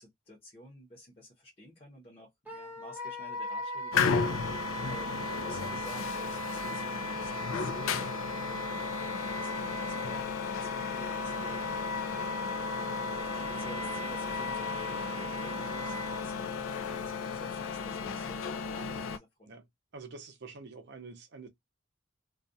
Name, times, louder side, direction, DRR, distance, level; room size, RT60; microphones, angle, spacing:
voice 1, 0.0-11.6 12.1-19.5, equal, 30° left, 0.7 m, -52 dB
Wind instrument woodwind instrument, 2.5-16.2, right 1 dB, 10° right, 0.7 m, -39 dB
sound 1, 3.9-19.2, left 6 dB, 90° left, 0.4 m, -34 dB
voice 2, 19.9-21.5, right 4 dB, 60° right, 0.6 m, -46 dB
2.3 x 2.2 x 2.6 m
head